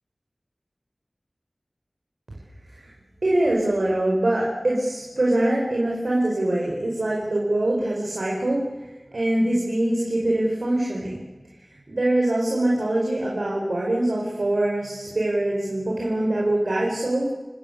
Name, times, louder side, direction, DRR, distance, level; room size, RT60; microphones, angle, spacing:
voice 1, 3.2-8.6 9.1-11.2 11.6-17.3, right 1 dB, 75° right, -3 dB, 4.8 m, -23 dB
29.0 x 17.5 x 6.9 m, 1.2 s
wide cardioid pair, 50°, 0 cm